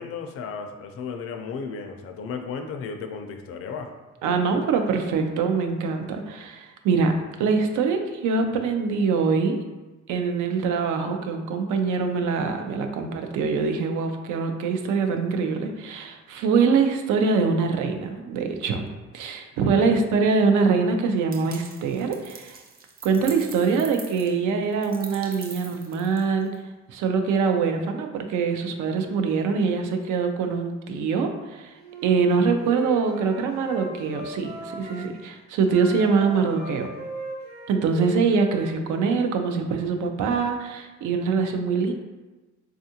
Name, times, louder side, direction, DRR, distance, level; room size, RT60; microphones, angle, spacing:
voice 1, 0.0-3.9 19.6-20.0, left 5 dB, 50° left, 4 dB, 0.4 m, -34 dB
voice 2, 4.2-9.6 10.1-18.9 19.1-22.6 23.0-26.5 26.9-31.7 32.0-36.9 37.7-41.9, right 5 dB, 85° right, 5 dB, 0.5 m, -24 dB
sound 1, 21.3-26.5, right 4 dB, 30° right, 0.5 m, -43 dB
Wind instrument woodwind instrument, 31.8-35.0 35.6-39.2, right 2 dB, 65° right, 1.1 m, -38 dB
3.5 x 2.4 x 2.7 m, 1.2 s
cardioid pair, 90°, 30 cm